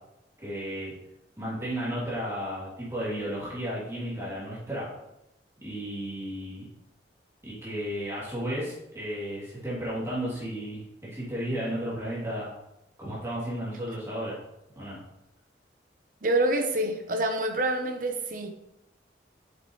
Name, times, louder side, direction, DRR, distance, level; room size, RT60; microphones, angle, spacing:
voice 1, 0.4-0.9 1.4-4.9 5.6-6.7 7.4-12.5 13.0-14.4 14.8-15.0, equal, 15° right, 2.9 m, -33 dB
voice 2, 16.2-18.5, right 1 dB, 45° right, 1.0 m, -27 dB
7.7 x 7.1 x 3.2 m
head